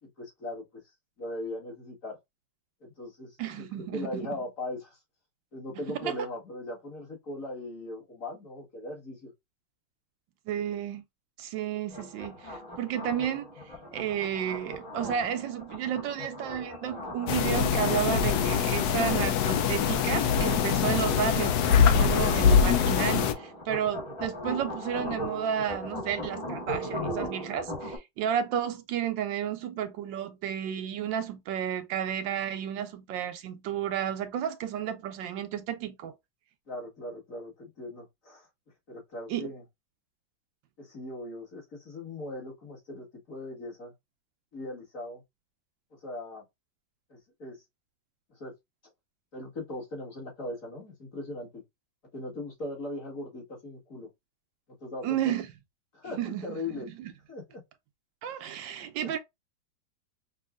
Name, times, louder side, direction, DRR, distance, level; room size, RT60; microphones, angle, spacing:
voice 1, 0.0-0.8 1.2-2.2 2.8-5.0 5.5-9.3 36.7-38.5 38.9-39.6 40.8-43.9 44.5-45.2 45.9-46.4 47.1-47.6 48.3-48.5 49.3-51.6 52.1-54.1 54.8-55.3 55.9-56.9 57.3-57.6 59.0-59.1, left 2 dB, 45° left, 2.0 m, -39 dB
voice 2, 3.4-4.2 5.9-6.2 10.5-11.0 11.4-13.5 13.9-36.1 39.3-39.5 55.0-55.5 56.2-57.1 58.2-59.2, right 9 dB, 75° right, 1.3 m, -32 dB
sound 1, 11.9-28.0, equal, 15° left, 1.3 m, -39 dB
sound 2, 17.3-23.3, left 7 dB, 70° left, 0.9 m, -23 dB
5.3 x 2.5 x 2.4 m
omnidirectional pair, 2.1 m